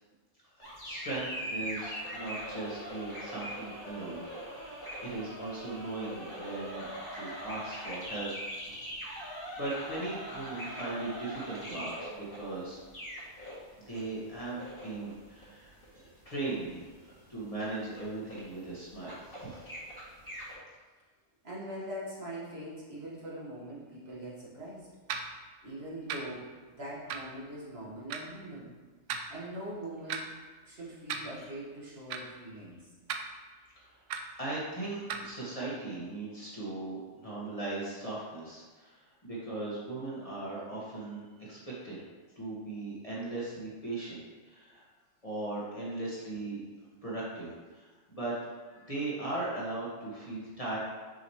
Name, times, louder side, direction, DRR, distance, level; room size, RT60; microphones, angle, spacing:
sound 1, 0.6-20.5, equal, 45° left, 2.3 m, -42 dB
voice 1, 0.8-4.2 5.0-8.3 9.3-12.8 13.9-16.9 17.3-19.7 31.4-31.5 33.7-33.9 34.4-42.0 42.4-44.8 45.2-46.6 47.0-48.4 48.7-50.8, right 2 dB, 30° left, -7 dB, 1.5 m, -38 dB
voice 2, 8.7-9.0 21.4-24.9 25.6-28.7 29.3-30.3 30.6-32.8, right 1 dB, 55° right, -6 dB, 1.8 m, -42 dB
sound 2, 25.1-25.3 26.1-26.2 27.1-27.3 28.1-28.2 29.1-29.3 30.1-30.2 31.1-31.3 32.1-32.2 33.1-33.2 34.1-34.2 35.1-35.3, right 7 dB, 75° right, 0.9 m, -35 dB
6.5 x 5.1 x 3.1 m, 1.4 s
omnidirectional pair, 1.3 m